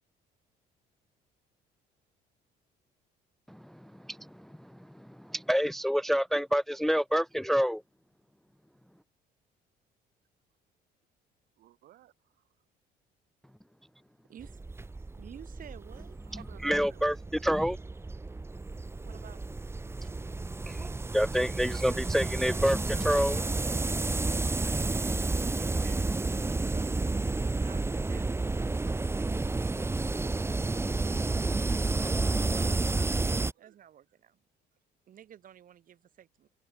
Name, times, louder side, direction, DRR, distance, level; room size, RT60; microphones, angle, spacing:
voice 1, 3.5-7.8 16.6-17.8 20.7-20.9 21.1-23.4, equal, ahead, 0.6 m, -28 dB
voice 2, 11.6-12.4 16.3-17.1 32.5-33.8, right 14 dB, 70° right, 7.7 m, -56 dB
sound 1, 14.4-33.5, right 3 dB, 15° right, 1.7 m, -31 dB
voice 3, 15.2-16.2 19.0-19.5 24.3-24.5 25.5-26.1 26.4-31.1 33.6-34.4 35.1-36.5, right 10 dB, 55° right, 4.5 m, -54 dB
open air
cardioid pair, 110°, 17 cm